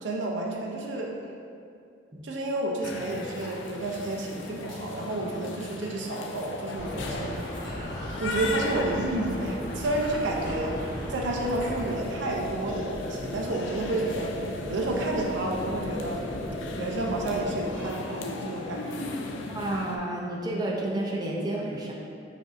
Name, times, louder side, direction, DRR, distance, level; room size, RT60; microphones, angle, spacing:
voice 1, 0.0-1.1 2.2-7.4 8.2-10.8 11.1-14.3 14.7-16.3 16.8-19.1, right 2 dB, 85° right, 0 dB, 0.5 m, -30 dB
sound 1, 2.8-20.0, left 3 dB, 85° left, 0.3 m, -38 dB
sound 2, 6.7-11.8, equal, 65° left, 1.1 m, -36 dB
sound 3, 11.7-17.9, left 1 dB, 40° left, 0.9 m, -37 dB
voice 2, 19.5-21.9, right 1 dB, 20° right, -3 dB, 0.5 m, -30 dB
6.1 x 2.7 x 2.4 m, 2.4 s
head